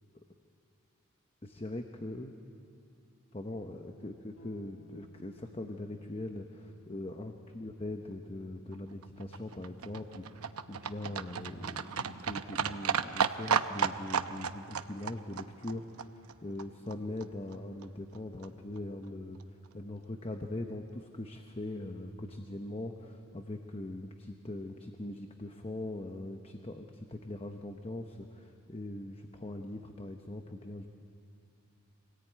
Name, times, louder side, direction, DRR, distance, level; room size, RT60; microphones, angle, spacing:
voice 1, 1.4-2.3 3.3-30.9, left 1 dB, 25° left, 5 dB, 0.9 m, -41 dB
sound 1, 4.4-14.1, left 6 dB, 75° left, 1.6 m, -63 dB
Livestock farm animals working animals, 8.7-16.9 17.2-17.3 17.5-17.6 17.8-17.9 18.1-18.2 18.4-18.5 18.8-18.9 19.1-19.2 19.4-19.5, right 6 dB, 90° right, 0.8 m, -34 dB
25.5 x 18.5 x 9.2 m, 2.6 s
head